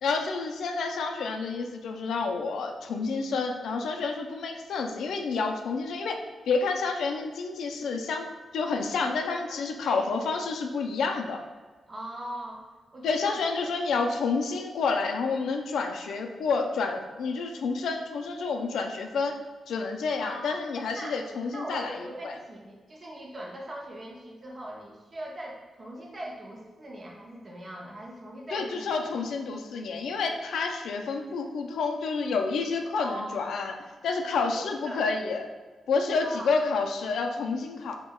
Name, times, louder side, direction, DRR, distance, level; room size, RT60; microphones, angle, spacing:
voice 1, 0.0-8.3 8.5-11.4 13.0-19.4 19.7-22.3 28.5-33.8 34.0-35.5 35.9-38.0, left 4 dB, 85° left, 4 dB, 0.3 m, -29 dB
voice 2, 9.2-10.1 11.9-12.7 12.9-14.2 20.2-20.6 21.0-21.2 21.5-28.8 33.0-33.3 34.5-35.0 36.2-36.5, right 1 dB, 30° right, -1 dB, 0.6 m, -41 dB
5.1 x 2.1 x 2.2 m, 1.4 s
wide cardioid pair, 130°, 0 cm